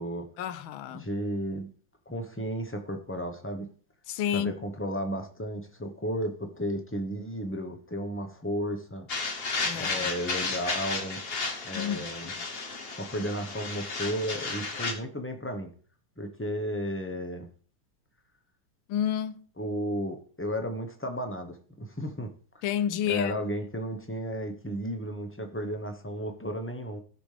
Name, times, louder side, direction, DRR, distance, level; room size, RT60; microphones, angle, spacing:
voice 1, 0.4-1.1 4.1-4.5 9.6-10.1 11.7-12.1 18.9-19.4 22.6-23.4, left 10 dB, 85° left, 1.5 m, -30 dB
voice 2, 0.9-1.7 2.1-3.7 4.3-9.1 9.7-11.2 11.6-12.3 13.0-15.7 16.2-17.5 19.6-22.6 23.1-27.0, equal, 15° left, 0.5 m, -33 dB
sound 1, 9.1-14.9, left 3 dB, 40° left, 1.0 m, -33 dB
17.5 x 6.1 x 3.4 m
omnidirectional pair, 2.2 m